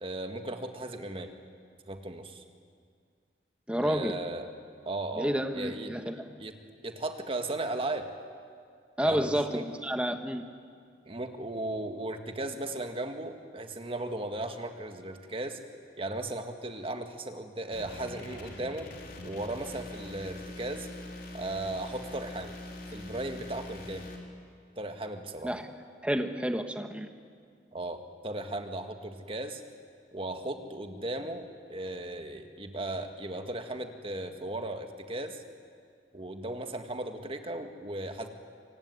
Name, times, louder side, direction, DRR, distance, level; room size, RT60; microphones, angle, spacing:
voice 1, 0.0-1.3 1.9-2.4 3.8-4.5 4.9-6.5 6.8-8.1 9.0-9.6 11.1-15.6 16.0-18.9 19.2-20.9 21.3-22.5 22.9-24.1 24.8-25.5 27.7-29.6 30.1-35.4 36.1-38.3, right 2 dB, 30° right, 6 dB, 1.9 m, -36 dB
voice 2, 3.7-4.1 5.2-6.4 9.0-10.5 25.4-25.7 26.0-27.1, equal, 5° right, 6 dB, 1.5 m, -30 dB
sound 1, 17.7-24.2, left 1 dB, 55° left, 4.0 m, -43 dB
25.0 x 25.0 x 9.6 m, 2.1 s
head